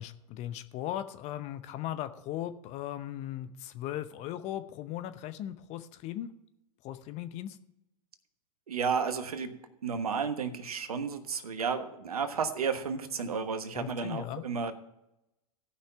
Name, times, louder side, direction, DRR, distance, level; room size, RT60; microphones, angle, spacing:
voice 1, 0.0-6.3 6.8-7.6 13.8-14.4, left 12 dB, 35° left, 11 dB, 0.8 m, -38 dB
voice 2, 8.7-9.5 9.8-14.7, right 5 dB, 80° right, 9 dB, 1.3 m, -32 dB
15.5 x 5.7 x 5.7 m, 0.87 s
hypercardioid pair, 105°, 19 cm